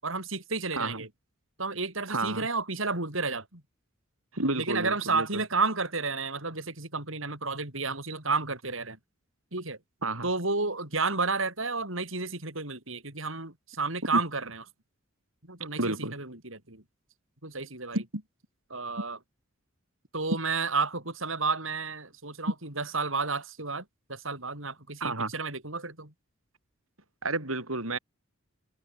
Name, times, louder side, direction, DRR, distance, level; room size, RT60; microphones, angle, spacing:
voice 1, 0.0-1.1 1.6-3.6 4.5-9.0 9.5-9.8 10.2-14.6 15.5-16.8 17.4-18.0 18.7-19.2 20.1-23.8 24.1-26.1, right 4 dB, 65° right, 7.0 m, -31 dB
voice 2, 2.1-2.5 4.3-5.4 10.0-10.3 14.1-14.2 15.6-16.2 17.9-18.2 25.0-25.3 27.2-28.0, right 2 dB, 90° right, 7.7 m, -31 dB
head